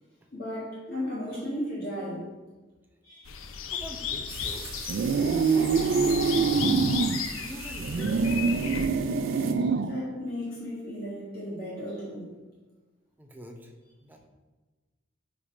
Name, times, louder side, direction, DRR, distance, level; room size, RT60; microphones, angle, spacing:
voice 1, 0.3-2.3 3.0-3.4 6.5-6.8 9.6-12.3, equal, 50° left, -7 dB, 1.7 m, -35 dB
sound 1, 3.3-8.9, left 7 dB, 90° left, 0.5 m, -35 dB
voice 2, 3.7-4.7 5.4-6.6 7.4-8.2 10.7-10.8 13.2-13.7 14.0-14.2, equal, 10° right, 3 dB, 0.6 m, -44 dB
sound 2, 4.3-9.5, right 9 dB, 85° right, 0.6 m, -44 dB
sound 3, 4.9-7.2 7.8-10.0, right 5 dB, 55° right, 0.3 m, -25 dB
5.2 x 4.2 x 4.9 m, 1.2 s
head